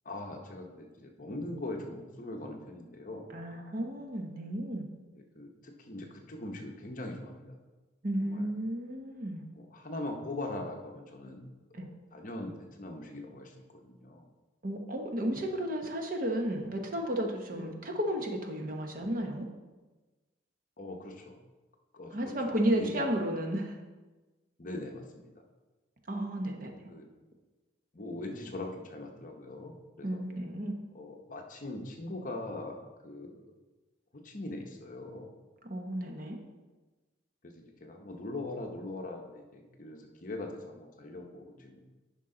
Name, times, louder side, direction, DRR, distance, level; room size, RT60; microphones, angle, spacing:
voice 1, 0.0-3.3 5.2-7.6 8.2-8.4 9.5-11.5 12.1-14.3 17.5-17.8 20.8-21.4 21.9-22.3 22.7-23.1 24.6-25.4 26.9-27.1 27.9-30.2 30.9-33.3 34.1-35.3 37.4-41.8, left 2 dB, 40° left, 3 dB, 0.9 m, -41 dB
voice 2, 3.3-4.9 8.0-9.4 11.7-11.9 14.6-19.5 22.1-23.8 26.1-26.8 30.0-30.8 35.6-36.4, right 1 dB, 45° right, 3 dB, 1.0 m, -33 dB
10.0 x 5.5 x 3.8 m, 1.2 s
head